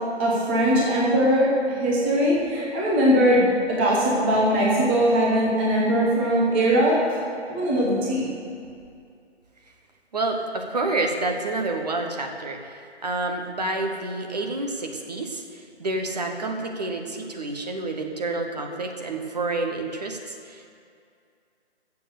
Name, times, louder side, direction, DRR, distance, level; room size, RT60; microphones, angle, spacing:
voice 1, 0.2-7.1 7.5-8.3, equal, 10° right, -5 dB, 0.9 m, -21 dB
voice 2, 10.1-20.7, right 2 dB, 40° right, 3 dB, 1.0 m, -29 dB
13.0 x 7.2 x 6.8 m, 2.4 s
figure-of-eight pair, 145°, 33 cm